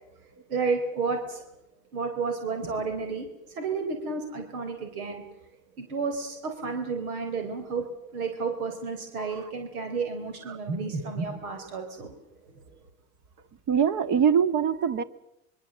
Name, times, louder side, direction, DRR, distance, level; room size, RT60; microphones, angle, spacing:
voice 1, 0.2-1.5 1.9-5.4 5.8-12.6, right 4 dB, 90° right, 5 dB, 4.0 m, -32 dB
voice 2, 13.7-15.0, right 7 dB, 45° right, 12 dB, 1.8 m, -23 dB
25.0 x 23.0 x 7.6 m, 0.85 s
supercardioid pair, 110°, 42 cm